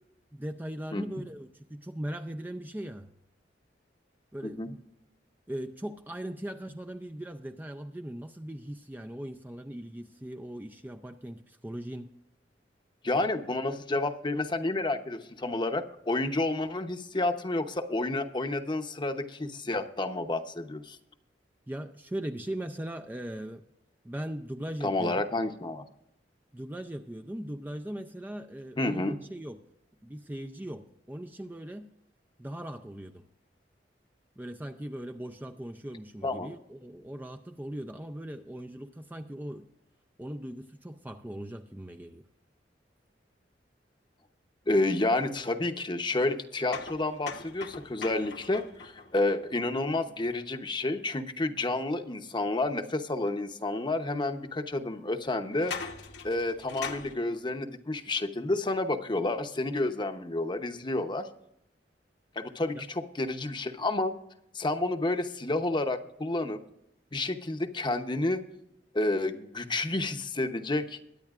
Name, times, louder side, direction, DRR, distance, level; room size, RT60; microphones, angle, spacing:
voice 1, 0.3-3.1 4.3-4.8 5.5-12.1 21.7-23.7 24.0-25.2 26.5-29.6 30.0-31.9 32.4-33.2 34.4-39.7 40.2-42.3 62.7-62.8, right 1 dB, 10° right, 0.5 m, -39 dB
voice 2, 13.0-21.0 24.8-25.8 28.8-29.2 36.2-36.5 44.7-55.7 56.2-61.3 62.4-64.1 64.5-66.6 67.1-68.4 68.9-71.0, left 2 dB, 25° left, 0.9 m, -30 dB
sound 1, 46.7-50.5 53.3-53.4 54.2-54.3 55.5-57.2, left 5 dB, 70° left, 1.3 m, -41 dB
22.0 x 9.9 x 2.4 m
head